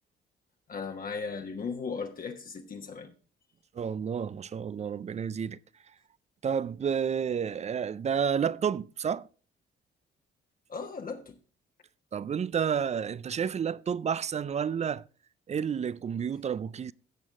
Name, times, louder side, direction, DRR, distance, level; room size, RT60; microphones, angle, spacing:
voice 1, 0.7-3.1 10.7-11.4, left 5 dB, 45° left, 1.2 m, -37 dB
voice 2, 3.8-5.6 6.4-9.3 12.1-15.0 15.5-16.9, right 7 dB, 35° right, 0.4 m, -30 dB
15.0 x 6.3 x 3.6 m
cardioid pair, 90°, 20 cm